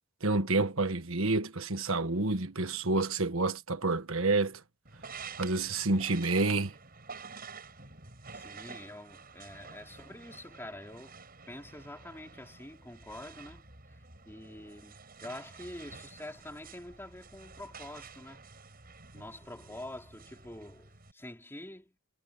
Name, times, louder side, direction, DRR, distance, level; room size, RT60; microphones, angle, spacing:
voice 1, 0.2-4.6 5.4-6.7, right 3 dB, 70° right, 1.5 m, -29 dB
sound 1, 4.8-21.1, right 5 dB, 45° right, 7.8 m, -50 dB
voice 2, 8.3-11.2 11.5-13.7 14.3-18.4 19.1-22.0, left 1 dB, 10° left, 4.0 m, -46 dB
head